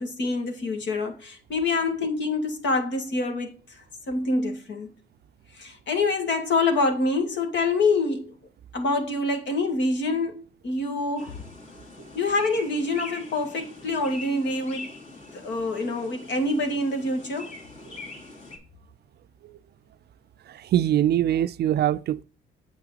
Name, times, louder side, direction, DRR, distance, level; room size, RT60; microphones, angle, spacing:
voice 1, 0.0-4.9 5.5-8.3 8.7-11.4 12.1-14.9 15.3-17.6, left 3 dB, 65° left, 2.0 m, -26 dB
sound 1, 11.2-18.6, left 2 dB, 35° left, 2.6 m, -43 dB
voice 2, 20.5-22.2, right 11 dB, 55° right, 0.4 m, -23 dB
7.9 x 5.7 x 4.0 m
cardioid pair, 90°, 20 cm